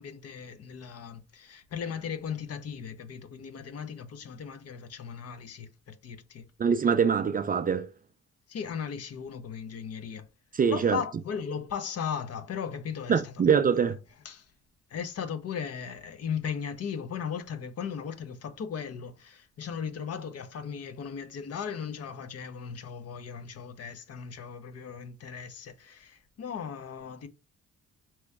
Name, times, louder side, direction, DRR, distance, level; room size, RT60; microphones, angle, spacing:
voice 1, 0.0-6.5 8.5-10.3 10.7-13.4 14.2-14.5 14.9-27.3, left 7 dB, 55° left, 0.8 m, -37 dB
voice 2, 6.6-7.9 10.5-11.0 13.1-14.0, right 6 dB, 30° right, 0.3 m, -24 dB
4.2 x 3.0 x 3.5 m
cardioid pair, 90°, 30 cm